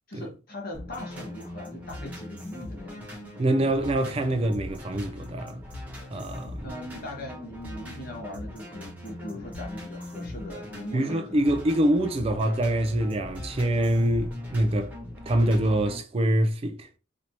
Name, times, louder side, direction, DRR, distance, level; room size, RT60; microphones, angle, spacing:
voice 1, 0.1-3.2 6.6-11.2 11.7-11.8, left 1 dB, 45° left, 1.3 m, -40 dB
sound 1, 0.7-16.0, left 1 dB, 10° right, 1.1 m, -40 dB
voice 2, 3.4-5.6 6.1-6.7 10.9-14.9 15.3-16.9, right 1 dB, 30° right, 0.3 m, -25 dB
4.3 x 2.6 x 2.9 m
head